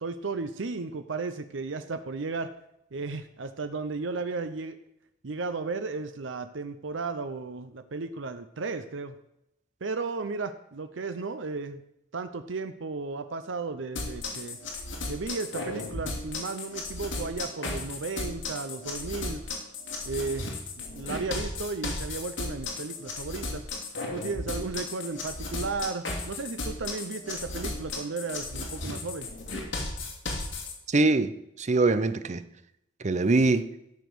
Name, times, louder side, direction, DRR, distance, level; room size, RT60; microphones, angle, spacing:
voice 1, 0.0-2.5 2.9-4.8 5.2-9.2 9.8-11.8 12.1-14.6 15.1-19.4 20.1-20.5 20.8-23.6 24.1-29.3, right 4 dB, 80° right, 9 dB, 0.7 m, -34 dB
sound 1, 14.0-30.7, left 2 dB, 80° left, 2.7 m, -35 dB
voice 2, 30.9-32.4 33.0-33.7, right 3 dB, 40° right, 13 dB, 0.6 m, -23 dB
13.0 x 5.2 x 6.2 m, 0.80 s
head